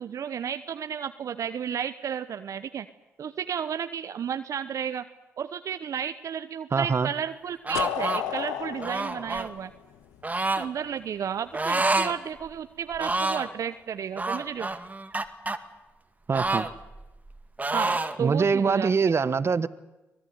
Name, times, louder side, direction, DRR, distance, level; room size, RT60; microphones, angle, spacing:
voice 1, 0.0-2.9 3.2-5.0 5.4-9.7 10.5-14.7 17.7-19.2, right 8 dB, 65° right, 1.0 m, -33 dB
voice 2, 6.7-7.1 16.3-16.7 18.2-19.7, right 5 dB, 45° right, 1.4 m, -23 dB
sound 1, 7.6-8.2 8.8-9.5 10.2-10.7 11.5-12.1 12.5-12.6 12.9-13.5 14.2-15.6 16.3-17.3 17.6-18.2, right 2 dB, 25° right, 2.2 m, -28 dB
sound 2, 7.7-10.6, left 11 dB, 85° left, 1.3 m, -33 dB
25.0 x 19.0 x 9.7 m
hypercardioid pair, 45°, 6 cm